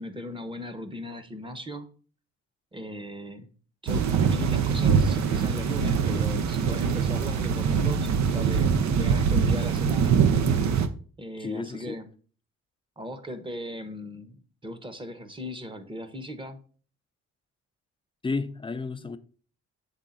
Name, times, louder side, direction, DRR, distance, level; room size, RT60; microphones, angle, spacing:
voice 1, 0.0-1.9 2.7-3.5 3.8-10.1 11.2-12.1 13.0-14.4 14.6-16.6, equal, 15° right, 1.0 m, -38 dB
sound 1, 3.9-10.9, right 6 dB, 65° right, 0.7 m, -23 dB
voice 2, 11.4-12.0 18.2-19.2, left 3 dB, 15° left, 0.5 m, -32 dB
7.3 x 3.7 x 3.9 m
cardioid pair, 90°, 30 cm